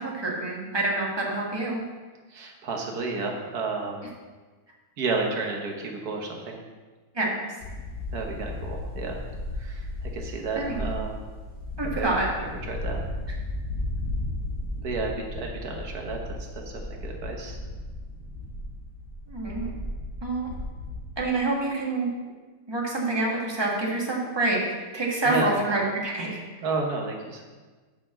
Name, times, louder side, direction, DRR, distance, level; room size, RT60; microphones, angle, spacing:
voice 1, 0.0-1.8 7.1-7.3 10.6-10.9 11.8-12.3 19.3-19.7 20.2-20.5 21.2-22.1 22.7-24.6 24.9-26.4, right 2 dB, 15° right, -3 dB, 1.3 m, -27 dB
voice 2, 2.3-4.1 5.0-6.6 8.1-9.2 9.6-11.3 12.0-12.1 12.7-13.1 14.8-17.6 25.3-25.5 26.6-27.4, right 3 dB, 55° right, 1 dB, 1.5 m, -31 dB
sound 1, 7.6-21.3, left 1 dB, 45° left, 1.5 m, -35 dB
6.0 x 5.8 x 7.2 m, 1.3 s
omnidirectional pair, 2.3 m